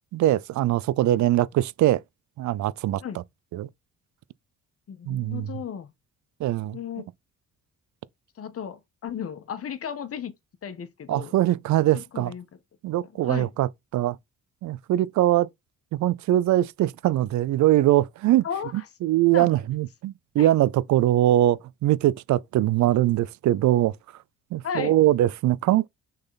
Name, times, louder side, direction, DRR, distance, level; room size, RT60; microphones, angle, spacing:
voice 1, 0.1-2.0 2.4-3.2 3.5-3.7 5.1-5.5 6.4-6.8 11.1-12.3 12.8-14.2 14.6-15.5 15.9-18.4 18.7-23.9 24.5-25.9, right 14 dB, 70° right, 0.5 m, -22 dB
voice 2, 4.9-5.9 6.7-7.1 8.4-10.3 10.6-11.3 11.9-12.4 13.2-13.5 18.4-18.8 19.3-19.5 20.4-20.5 24.6-25.0, left 8 dB, 50° left, 1.3 m, -34 dB
6.5 x 4.0 x 4.1 m
cardioid pair, 90°, 30 cm